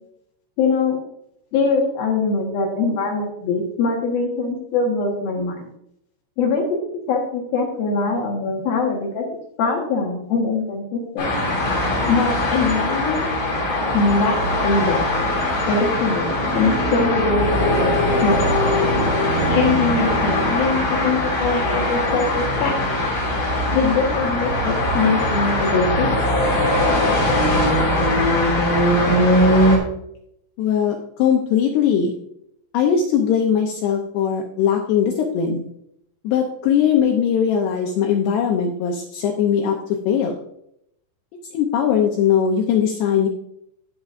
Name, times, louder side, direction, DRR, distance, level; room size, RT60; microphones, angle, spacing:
voice 1, 0.6-1.0 1.5-5.7 6.4-6.6 7.1-9.2 9.6-11.3 12.0-13.3 13.9-15.0 15.7-18.4 19.5-22.7 23.7-26.1, left 4 dB, 65° left, -1 dB, 2.6 m, -22 dB
sound 1, 11.2-29.8, left 1 dB, 40° left, 3.2 m, -20 dB
voice 2, 30.6-32.2 32.7-35.6 36.2-39.8 40.1-40.4 41.5-43.3, left 8 dB, 90° left, 1 dB, 2.3 m, -20 dB
17.0 x 6.1 x 2.5 m, 0.75 s
omnidirectional pair, 5.9 m